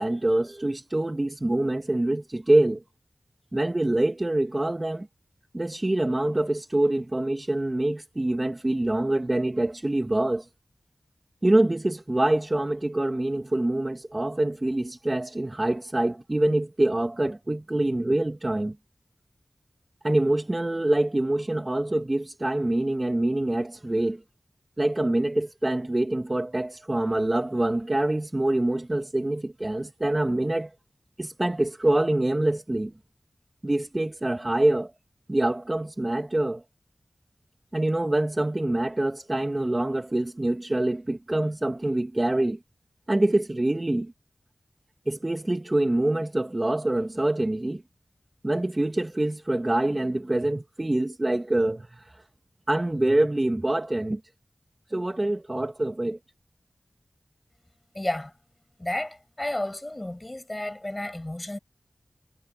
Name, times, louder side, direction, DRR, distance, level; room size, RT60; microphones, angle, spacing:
voice 1, 0.0-2.8 3.5-5.1 5.5-10.4 11.4-18.8 20.0-24.2 24.8-30.7 31.2-32.9 33.6-34.9 35.3-36.6 37.7-42.6 43.1-44.1 45.1-47.8 48.4-52.0 52.7-54.2 54.9-56.2, right 1 dB, 30° right, 2.5 m, -25 dB
voice 2, 57.9-58.3 58.8-61.6, left 1 dB, 25° left, 7.7 m, -32 dB
wide cardioid pair, 55°, 0 cm